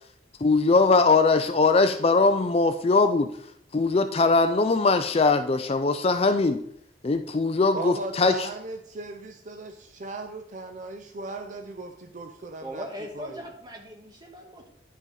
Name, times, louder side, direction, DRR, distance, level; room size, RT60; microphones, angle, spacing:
voice 1, 0.4-3.3 3.7-6.6 7.0-8.3, left 3 dB, 30° left, 8 dB, 0.4 m, -21 dB
voice 2, 7.7-12.9 13.1-13.5, right 2 dB, 40° right, 6 dB, 0.5 m, -37 dB
voice 3, 12.6-14.7, equal, 20° right, 1 dB, 1.5 m, -39 dB
10.0 x 5.1 x 4.0 m, 0.67 s
head